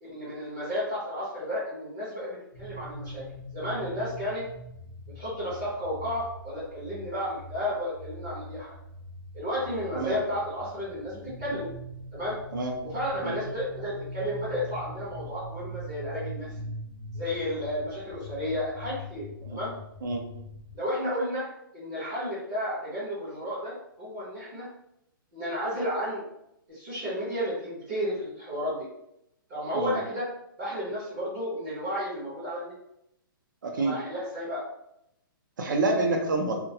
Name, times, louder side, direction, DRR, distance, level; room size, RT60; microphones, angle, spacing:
voice 1, 0.0-3.2 3.5-4.4 5.1-8.7 9.3-11.7 12.1-12.4 12.9-16.5 17.1-19.7 20.7-21.5 21.7-24.7 25.3-26.2 26.7-28.9 29.5-30.3 30.6-32.7 33.8-34.6, equal, 15° right, -11 dB, 0.6 m, -32 dB
sound 1, 2.5-20.8, equal, 65° left, 0.6 m, -42 dB
voice 2, 33.6-34.0 35.6-36.6, right 3 dB, 60° right, 2 dB, 0.6 m, -27 dB
2.3 x 2.2 x 2.7 m, 0.79 s
hypercardioid pair, 180°, 12 cm